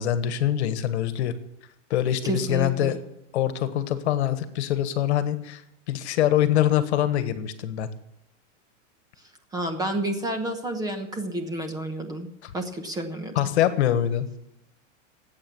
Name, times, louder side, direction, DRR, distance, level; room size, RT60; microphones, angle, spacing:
voice 1, 0.0-1.3 1.9-2.9 3.3-5.6 5.9-7.9 12.4-12.5 13.3-14.3, left 11 dB, 60° left, 11 dB, 1.5 m, -24 dB
voice 2, 2.2-3.0 9.5-13.3, right 1 dB, 10° right, 5 dB, 1.1 m, -30 dB
18.5 x 8.6 x 7.1 m, 0.78 s
supercardioid pair, 170°, 38 cm